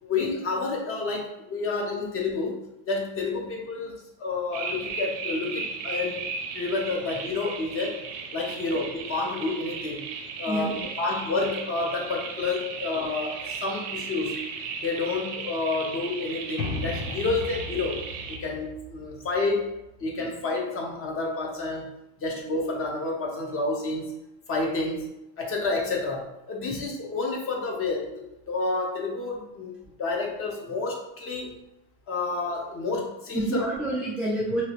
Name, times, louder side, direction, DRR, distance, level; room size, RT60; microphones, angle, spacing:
voice 1, 0.0-2.6 2.9-6.2 6.5-8.0 8.3-10.1 10.4-14.4 14.8-19.7 20.0-24.2 24.5-25.1 25.4-28.1 28.5-29.7 30.0-31.5 32.1-33.4, left 3 dB, 30° left, 0 dB, 0.7 m, -29 dB
sound 1, 4.5-18.4, right 5 dB, 65° right, 0.7 m, -36 dB
voice 2, 10.5-10.9 26.7-26.8 33.3-34.6, right 1 dB, 5° right, -8 dB, 0.4 m, -28 dB
sound 2, 16.6-20.2, left 3 dB, 70° left, 0.8 m, -36 dB
2.9 x 2.8 x 2.9 m, 0.87 s
supercardioid pair, 135°, 43 cm